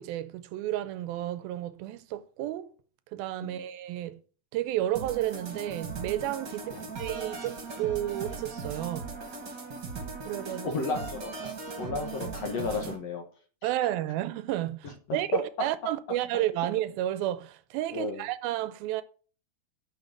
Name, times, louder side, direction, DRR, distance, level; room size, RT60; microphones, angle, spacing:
voice 1, 0.0-2.7 3.1-4.2 4.5-9.1 10.3-10.7 13.6-19.0, right 13 dB, 80° right, 2.5 m, -31 dB
sound 1, 4.9-13.0, right 4 dB, 40° right, 1.9 m, -38 dB
voice 2, 10.6-13.2 13.6-13.7 15.1-15.2 17.9-18.2, left 4 dB, 55° left, 1.9 m, -33 dB
10.5 x 6.0 x 7.3 m
omnidirectional pair, 4.4 m